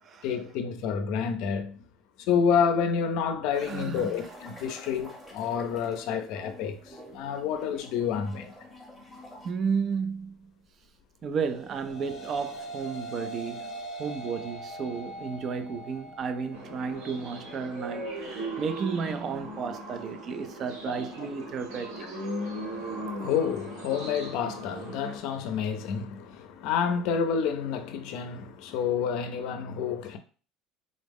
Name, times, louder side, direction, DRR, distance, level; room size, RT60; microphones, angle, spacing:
voice 1, 0.2-1.8 2.2-8.5 22.4-30.2, left 7 dB, 65° left, 0.5 m, -29 dB
sound 1, 3.5-9.5, equal, 5° right, 0.8 m, -48 dB
voice 2, 3.6-4.3 9.4-10.4 11.2-22.1, right 6 dB, 35° right, 0.3 m, -33 dB
sound 2, 11.5-20.6, right 1 dB, 35° left, 0.8 m, -43 dB
sound 3, 16.5-25.2, right 1 dB, 75° right, 1.1 m, -38 dB
3.8 x 2.0 x 3.4 m
cardioid pair, 145°, 0 cm